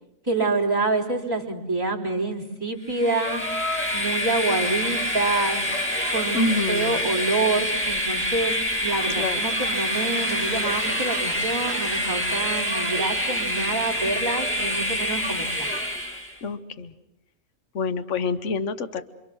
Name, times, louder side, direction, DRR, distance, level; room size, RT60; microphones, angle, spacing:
voice 1, 0.2-3.4 3.9-5.6 6.1-15.7, right 3 dB, 15° right, -4 dB, 3.8 m, -27 dB
Train, 2.9-16.4, equal, 10° left, 2.3 m, -26 dB
voice 2, 6.3-7.1 9.1-9.4 16.4-16.9 17.7-19.0, left 3 dB, 65° left, 10 dB, 1.4 m, -27 dB
28.0 x 25.5 x 6.2 m, 0.92 s
omnidirectional pair, 1.4 m